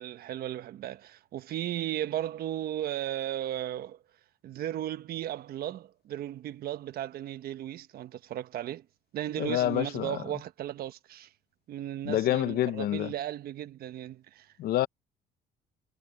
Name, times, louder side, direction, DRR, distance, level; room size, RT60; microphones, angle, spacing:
voice 1, 0.0-4.0 4.4-8.8 9.1-11.3 11.7-14.5, right 12 dB, 65° right, 1.2 m, -35 dB
voice 2, 9.4-10.1 12.1-13.1 14.6-14.9, left 14 dB, 70° left, 0.9 m, -27 dB
cardioid pair, 110°, 17 cm